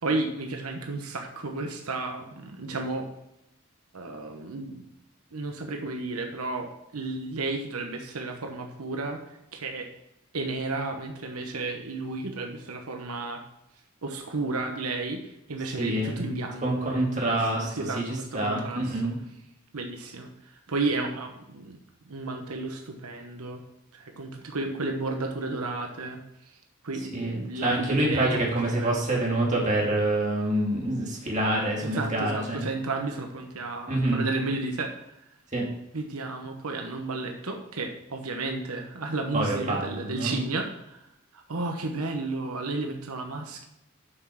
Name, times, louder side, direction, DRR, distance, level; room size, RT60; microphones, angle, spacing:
voice 1, 0.0-3.1 3.9-4.9 5.3-9.9 10.3-13.4 14.0-19.0 19.7-21.8 22.1-23.6 23.9-26.6 26.8-28.4 28.8-29.0 31.8-35.2 35.9-41.1 41.3-43.7, right 3 dB, 90° right, 4 dB, 1.1 m, -33 dB
voice 2, 15.8-16.2 16.6-17.7 18.0-19.2 27.1-32.6 33.9-34.2 35.5-35.7 39.3-40.4, right 1 dB, 35° right, -3 dB, 2.5 m, -26 dB
7.8 x 6.0 x 6.4 m, 0.86 s
head